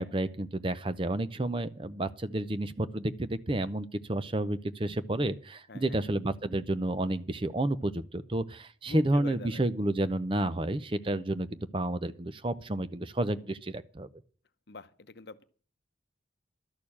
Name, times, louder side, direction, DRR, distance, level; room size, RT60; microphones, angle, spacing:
voice 1, 0.0-14.1, right 1 dB, 25° right, 0.6 m, -31 dB
voice 2, 5.7-6.0 8.9-9.6 14.7-15.4, left 3 dB, 60° left, 0.8 m, -45 dB
12.5 x 6.7 x 8.6 m
head